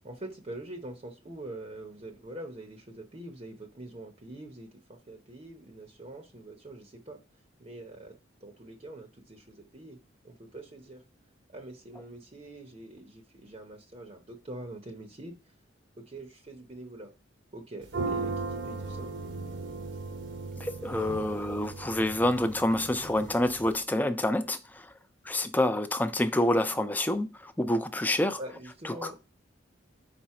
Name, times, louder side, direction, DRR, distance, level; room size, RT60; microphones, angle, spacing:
voice 1, 0.0-7.2 7.6-10.0 10.2-11.0 11.5-15.3 16.0-17.1 17.5-19.1 28.4-29.2, right 1 dB, 30° right, 0.7 m, -44 dB
sound 1, 17.8-23.8, right 3 dB, 75° right, 1.0 m, -37 dB
voice 2, 20.6-24.9 25.3-28.4 28.8-29.1, left 1 dB, 10° left, 0.4 m, -27 dB
5.0 x 4.4 x 4.7 m
head